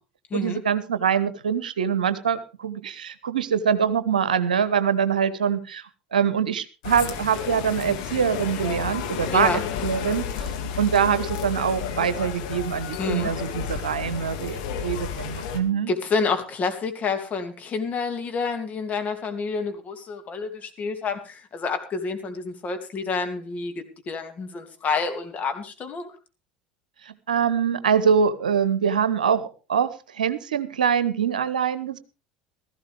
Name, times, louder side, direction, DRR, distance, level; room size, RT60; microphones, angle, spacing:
voice 1, 0.3-5.8 6.1-10.3 10.8-15.9 27.0-32.0, right 7 dB, 75° right, 14 dB, 0.9 m, -24 dB
sound 1, 6.8-15.6, left 7 dB, 60° left, 2.0 m, -31 dB
voice 2, 9.3-9.6 13.0-13.3 15.9-26.1, left 4 dB, 35° left, 6 dB, 2.5 m, -28 dB
16.0 x 14.5 x 3.4 m, 0.32 s
figure-of-eight pair, 70°, 4 cm